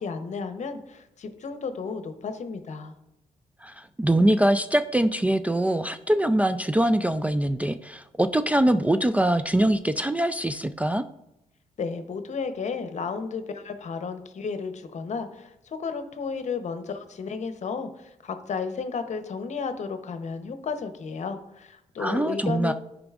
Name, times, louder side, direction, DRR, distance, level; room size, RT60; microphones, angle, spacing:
voice 1, 0.0-2.9 11.8-22.7, left 5 dB, 55° left, 9 dB, 0.8 m, -33 dB
voice 2, 3.6-11.0 22.0-22.7, right 1 dB, 10° right, 8 dB, 0.3 m, -23 dB
10.5 x 5.0 x 2.4 m, 0.86 s
supercardioid pair, 60°, 14 cm